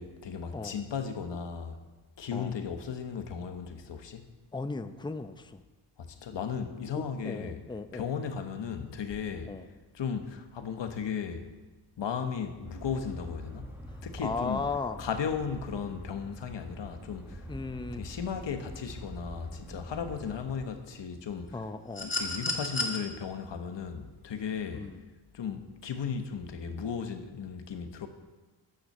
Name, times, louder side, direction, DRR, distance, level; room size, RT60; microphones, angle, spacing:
voice 1, 0.0-1.8 2.2-4.2 6.0-7.6 7.9-9.5 9.9-11.5 12.0-13.7 14.0-14.7 15.0-17.5 18.0-21.6 22.0-24.9 25.3-28.1, left 6 dB, 85° left, 7 dB, 1.3 m, -36 dB
voice 2, 4.5-5.6 7.0-8.1 9.4-9.7 14.2-15.0 17.5-18.1 21.5-22.1 24.7-25.0, left 3 dB, 10° left, 9 dB, 0.7 m, -36 dB
sound 1, 12.6-20.7, right 1 dB, 5° right, 1.6 m, -45 dB
sound 2, 21.9-23.0 24.5-24.6, left 2 dB, 25° left, 2.3 m, -32 dB
11.5 x 9.7 x 6.6 m, 1.2 s
cardioid pair, 80°, 42 cm